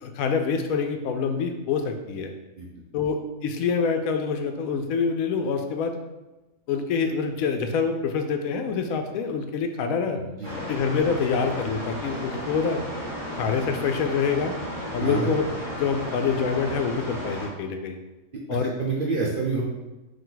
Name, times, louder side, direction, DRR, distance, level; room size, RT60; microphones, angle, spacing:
voice 1, 0.0-2.3 2.9-6.0 6.7-10.2 10.7-12.8 13.3-14.5 14.9-15.4 15.8-18.0 18.5-18.7, left 5 dB, 75° left, 6 dB, 1.0 m, -26 dB
voice 2, 10.2-10.5 15.0-15.3 18.8-19.6, right 4 dB, 55° right, -3 dB, 0.6 m, -27 dB
sound 1, 10.4-17.5, equal, 20° right, 1.1 m, -34 dB
4.8 x 2.6 x 3.9 m, 1.1 s
omnidirectional pair, 1.5 m